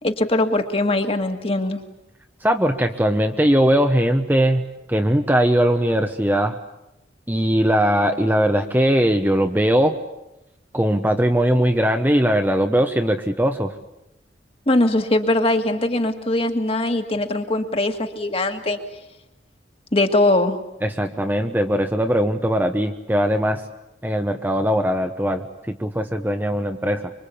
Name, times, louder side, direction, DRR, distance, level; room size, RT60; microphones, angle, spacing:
voice 1, 0.0-1.8 14.7-18.8 19.9-20.6, left 2 dB, 35° left, 6 dB, 1.9 m, -21 dB
voice 2, 2.4-4.6 4.9-6.6 7.3-10.0 10.7-13.7 20.8-23.6 24.0-27.1, equal, 10° right, 6 dB, 0.9 m, -20 dB
25.5 x 23.5 x 8.6 m, 0.92 s
head